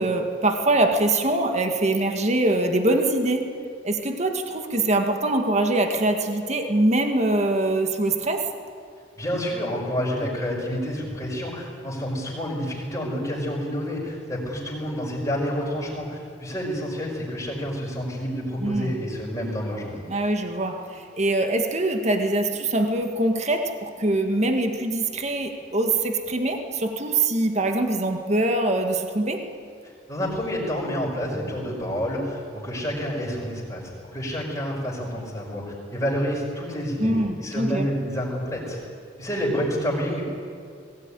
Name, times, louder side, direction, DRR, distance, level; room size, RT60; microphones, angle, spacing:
voice 1, 0.0-3.6 3.8-8.5 18.6-18.9 20.1-29.5 37.0-37.9, right 2 dB, 40° right, 5 dB, 1.8 m, -23 dB
voice 2, 9.2-19.9 30.1-37.1 37.4-38.8 39.2-40.2, equal, 20° left, -6 dB, 5.0 m, -29 dB
21.0 x 18.0 x 9.9 m, 2.3 s
head